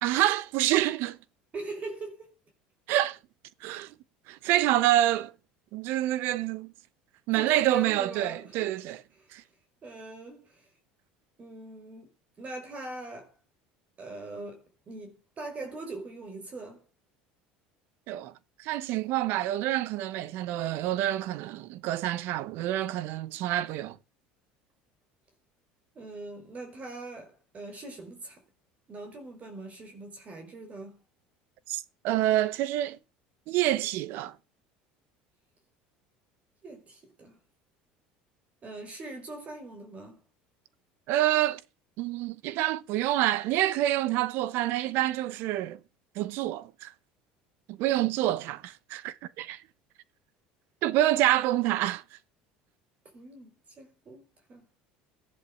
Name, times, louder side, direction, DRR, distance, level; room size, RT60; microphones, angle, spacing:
voice 1, 0.0-1.2 2.9-3.2 3.6-3.9 4.3-5.3 5.7-6.7 7.3-9.0 9.3-9.4 18.1-18.3 18.6-24.0 31.7-33.0 33.5-34.3 41.1-41.6 42.0-45.8 46.2-46.9 47.7-49.6 50.8-52.0, right 14 dB, 65° right, 1.0 m, -27 dB
voice 2, 1.5-2.3 7.3-8.7 9.1-9.3 9.8-10.7 11.4-12.1 12.4-13.4 14.0-16.8 26.0-28.4 28.9-31.0 36.6-37.4 38.6-40.2 53.1-54.7, right 2 dB, 35° right, 5.2 m, -42 dB
13.5 x 11.0 x 6.5 m
supercardioid pair, 90°, 4 cm